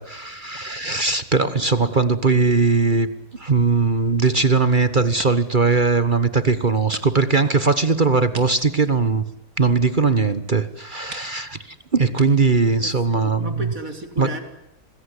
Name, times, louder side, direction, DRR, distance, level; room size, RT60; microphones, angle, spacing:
voice 1, 0.0-9.2 9.6-13.7 14.2-14.3, right 4 dB, 35° right, 13 dB, 1.4 m, -20 dB
sound 1, 4.0-4.6 5.0-5.6 6.0-6.1 6.9-7.1 7.3-7.4 8.3-9.9 10.6-10.7 11.1-11.3 12.1-12.3, right 4 dB, 85° right, 3.2 m, -41 dB
voice 2, 12.8-14.4, right 1 dB, 65° right, 6 dB, 4.0 m, -34 dB
26.5 x 21.0 x 9.9 m, 0.86 s
omnidirectional pair, 1.6 m